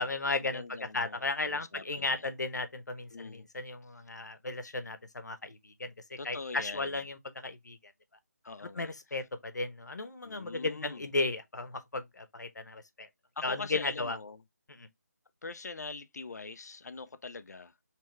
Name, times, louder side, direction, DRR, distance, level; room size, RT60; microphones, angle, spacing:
voice 1, 0.0-0.6 0.9-7.8 8.8-13.1 13.4-14.2 14.7-14.9, left 3 dB, 90° left, 1.1 m, -35 dB
voice 2, 0.5-1.2 1.5-2.3 3.1-3.5 6.2-7.0 8.4-8.9 10.2-11.1 13.4-14.4 15.4-17.7, left 4 dB, 70° left, 0.6 m, -43 dB
4.6 x 3.4 x 3.2 m
figure-of-eight pair, 175°, 9 cm